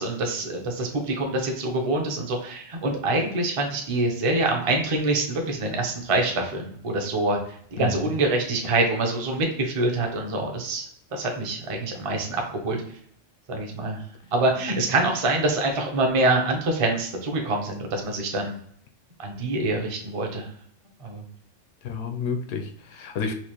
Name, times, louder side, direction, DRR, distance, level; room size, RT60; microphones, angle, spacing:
voice 1, 0.0-7.4 7.7-12.8 13.5-14.0 14.3-18.5 19.2-20.5 21.0-21.2, right 2 dB, 40° right, 2 dB, 0.5 m, -25 dB
voice 2, 7.8-8.1 21.8-23.3, left 5 dB, 80° left, 5 dB, 0.9 m, -30 dB
4.3 x 2.5 x 2.9 m, 0.63 s
omnidirectional pair, 1.3 m